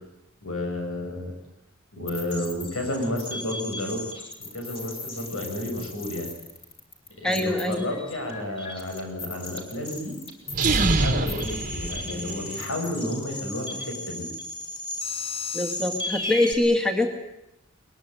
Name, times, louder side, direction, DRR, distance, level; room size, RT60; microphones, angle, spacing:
voice 1, 0.4-1.3 1.9-4.1 4.4-6.3 7.2-10.2 10.7-14.3, left 1 dB, 85° left, 3 dB, 7.6 m, -31 dB
sound 1, 2.1-16.5, left 2 dB, 25° left, 4.3 m, -36 dB
voice 2, 7.2-7.9 15.5-17.1, left 1 dB, 5° left, 2 dB, 2.2 m, -24 dB
sound 2, 10.5-12.6, right 3 dB, 40° right, 1.6 m, -25 dB
22.0 x 22.0 x 9.2 m, 0.88 s
head